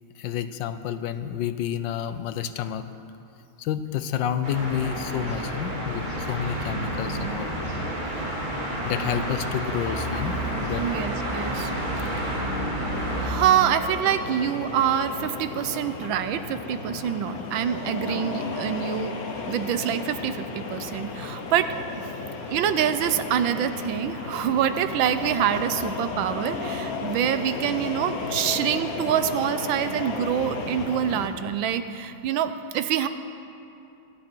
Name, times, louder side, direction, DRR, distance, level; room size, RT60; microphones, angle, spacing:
voice 1, 0.2-2.9 3.6-7.5 8.8-10.8, left 9 dB, 75° left, 11 dB, 1.3 m, -29 dB
sound 1, 4.4-13.3, right 1 dB, 25° right, 2.5 m, -30 dB
voice 2, 10.8-11.7 12.2-12.3 13.2-19.2 19.5-22.1 22.5-33.1, right 9 dB, 90° right, 11 dB, 1.4 m, -26 dB
sound 2, 12.9-31.3, left 4 dB, 55° left, 1.5 m, -34 dB
25.5 x 9.4 x 4.5 m, 2.7 s
omnidirectional pair, 2.1 m